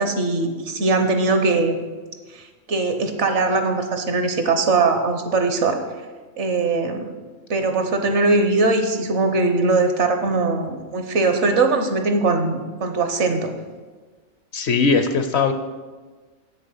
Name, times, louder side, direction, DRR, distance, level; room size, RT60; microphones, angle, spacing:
voice 1, 0.0-1.8 2.3-5.8 6.4-7.0 7.5-13.5, right 3 dB, 60° right, 6 dB, 1.1 m, -21 dB
voice 2, 14.5-15.5, left 4 dB, 60° left, 8 dB, 0.8 m, -19 dB
7.8 x 6.7 x 5.6 m, 1.4 s
omnidirectional pair, 1.4 m